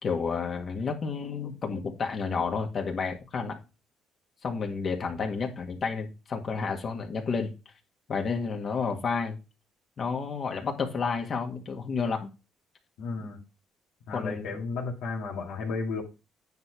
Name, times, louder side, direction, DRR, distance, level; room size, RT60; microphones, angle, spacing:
voice 1, 0.0-3.6 4.4-7.5 8.1-9.4 10.0-12.3 14.1-14.5, left 5 dB, 50° left, 2.0 m, -31 dB
voice 2, 13.0-13.4 14.1-16.0, left 4 dB, 85° left, 2.3 m, -33 dB
9.4 x 4.4 x 4.8 m
cardioid pair, 100°, 0 cm